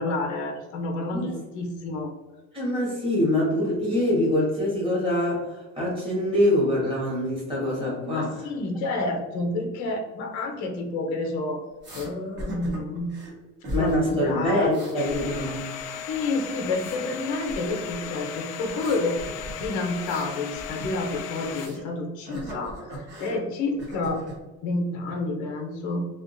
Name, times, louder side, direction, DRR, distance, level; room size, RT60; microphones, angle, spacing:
voice 1, 0.0-2.1 8.0-11.6 11.9-13.1 13.7-15.0 16.1-19.2 19.6-24.2 24.6-26.1, left 2 dB, 85° left, 3 dB, 0.8 m, -29 dB
voice 2, 2.5-8.5 13.7-15.7, left 1 dB, 20° right, -5 dB, 1.4 m, -24 dB
sound 1, 11.8-12.1 12.4-13.3 13.6-14.1 14.4-15.8 16.1-17.0 17.5-18.1 18.7-21.9 22.2-23.4 23.8-24.4, right 1 dB, 40° right, 1.3 m, -38 dB
Domestic sounds home sounds, 14.9-21.7, left 7 dB, 65° left, 0.4 m, -36 dB
3.5 x 2.5 x 2.5 m, 1.2 s
cardioid pair, 150°, 29 cm